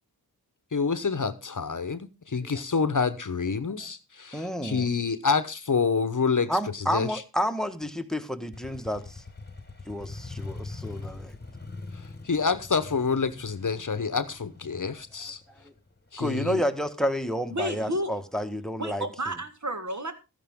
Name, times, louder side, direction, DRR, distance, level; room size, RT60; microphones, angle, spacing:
voice 1, 0.7-6.5 6.9-7.1 12.2-15.4 16.1-16.6, left 5 dB, 55° left, 1.0 m, -27 dB
voice 2, 4.3-4.9 6.5-9.2 9.9-11.4 14.8-14.9 16.2-19.0, equal, ahead, 1.4 m, -30 dB
Motorcycle, 8.5-16.2, left 3 dB, 25° left, 1.5 m, -42 dB
voice 3, 17.5-18.1 18.8-20.1, equal, 50° right, 1.9 m, -31 dB
13.5 x 10.0 x 3.6 m
cardioid pair, 40°, 38 cm